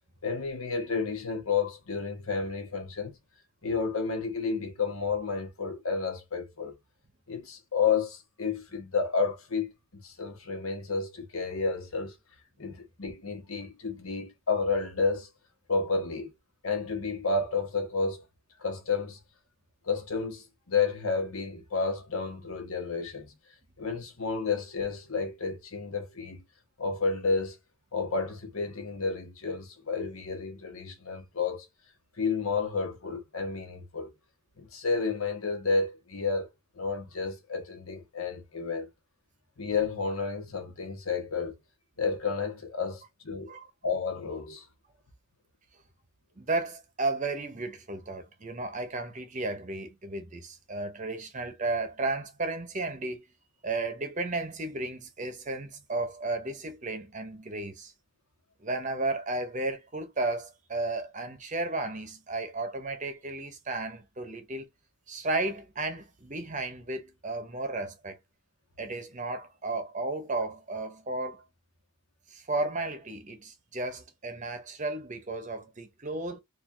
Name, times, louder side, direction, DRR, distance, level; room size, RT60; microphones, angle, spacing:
voice 1, 0.2-3.2 3.6-6.7 7.3-12.1 12.6-15.3 15.7-16.3 16.6-18.2 18.6-19.2 19.8-23.3 23.8-26.4 26.8-27.6 27.9-31.6 32.2-34.1 34.6-36.5 36.7-38.9 39.6-41.5 42.0-43.5 43.8-44.6, left 4 dB, 75° left, 1.3 m, -31 dB
voice 2, 46.4-53.2 53.6-57.9 58.6-64.7 65.1-68.2 68.8-71.4 72.3-76.4, right 2 dB, 35° right, 0.8 m, -33 dB
4.2 x 2.5 x 2.6 m
head